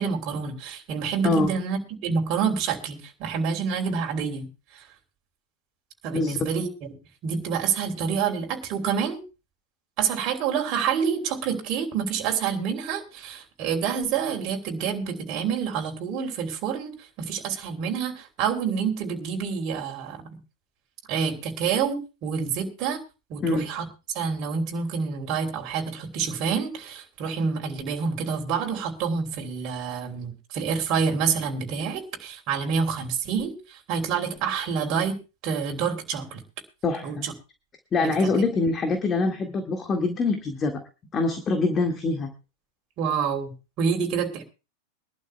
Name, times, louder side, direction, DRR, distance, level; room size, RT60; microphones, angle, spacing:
voice 1, 0.0-4.4 4.7-4.8 6.0-6.7 7.2-9.2 10.0-16.9 17.2-20.2 21.1-23.0 23.3-23.9 24.1-36.4 37.0-37.3 38.0-38.3 43.0-44.4, right 6 dB, 45° right, 2 dB, 3.2 m, -27 dB
voice 2, 6.1-6.5 23.4-23.6 36.8-37.1 37.9-40.8 41.1-42.3, left 3 dB, 25° left, 6 dB, 1.9 m, -24 dB
24.0 x 12.0 x 2.2 m, 0.30 s
figure-of-eight pair, 95°, 0 cm